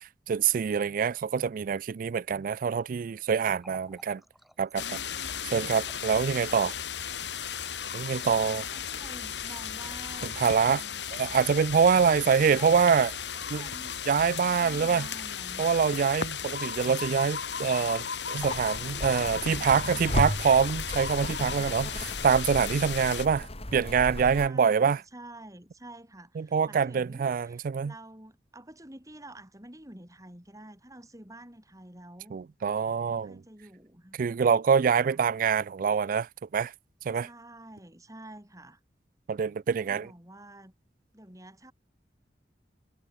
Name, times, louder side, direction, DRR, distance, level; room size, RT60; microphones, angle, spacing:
voice 1, 0.3-4.2 4.6-5.0 5.4-6.7 7.9-8.7 10.4-10.8 11.1-13.1 13.5-13.7 14.1-15.1 15.6-25.0 26.4-27.9 32.3-33.4 34.1-36.7 37.1-37.3 39.3-40.1, right 6 dB, 50° right, 0.3 m, -25 dB
Water tap faucet, 3.4-17.5 17.7-17.9 18.3-18.7 19.0-19.7 20.3-21.1, equal, ahead, 5.2 m, -57 dB
sound 1, 4.8-23.3, left 7 dB, 85° left, 3.7 m, -35 dB
voice 2, 8.2-10.3 10.6-11.4 12.2-12.9 13.3-15.7 19.2-20.1 23.5-23.7 24.3-32.4 33.1-34.2 35.0-35.2 37.1-38.8 39.6-40.7 41.1-41.7, right 1 dB, 20° right, 6.0 m, -49 dB
sound 2, 18.4-24.5, left 1 dB, 35° left, 3.4 m, -35 dB
head